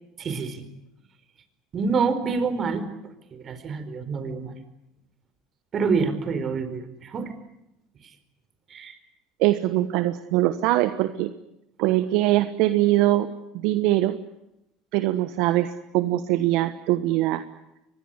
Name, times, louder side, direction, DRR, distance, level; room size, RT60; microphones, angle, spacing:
voice 1, 0.2-0.7 1.7-4.5 5.7-7.3 8.0-8.1 8.7-9.0, right 5 dB, 40° right, 11 dB, 4.5 m, -27 dB
voice 2, 9.4-11.3 11.8-13.3 13.5-14.2 14.9-17.4, right 15 dB, 70° right, 11 dB, 1.2 m, -22 dB
24.5 x 20.5 x 9.8 m, 0.90 s
hypercardioid pair, 80°, 0 cm